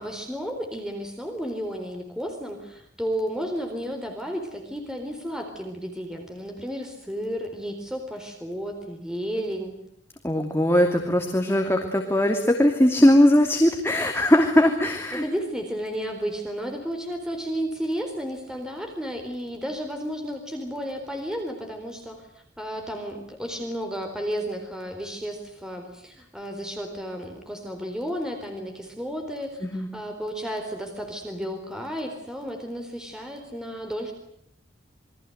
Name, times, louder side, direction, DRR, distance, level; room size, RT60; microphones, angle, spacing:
voice 1, 0.0-9.7 15.2-22.3 22.6-34.1, equal, 5° right, 3 dB, 4.1 m, -32 dB
voice 2, 10.2-15.2 29.6-29.9, left 1 dB, 15° left, 2 dB, 2.7 m, -20 dB
28.0 x 23.0 x 8.0 m, 0.72 s
head